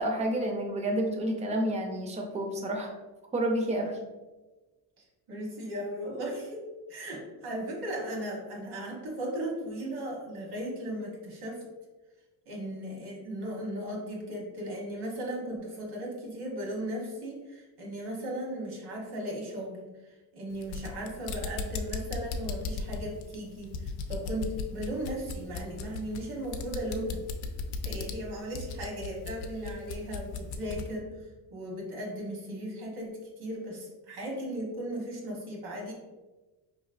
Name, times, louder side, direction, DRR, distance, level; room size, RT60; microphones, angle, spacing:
voice 1, 0.0-2.9 3.3-4.0, right 1 dB, 20° right, 2 dB, 0.5 m, -29 dB
voice 2, 5.0-11.6 12.5-27.2 27.8-35.9, right 1 dB, 70° right, -1 dB, 1.3 m, -37 dB
sound 1, 20.5-30.9, left 4 dB, 80° left, 0.6 m, -37 dB
4.6 x 3.0 x 2.5 m, 1.2 s
cardioid pair, 140°, 39 cm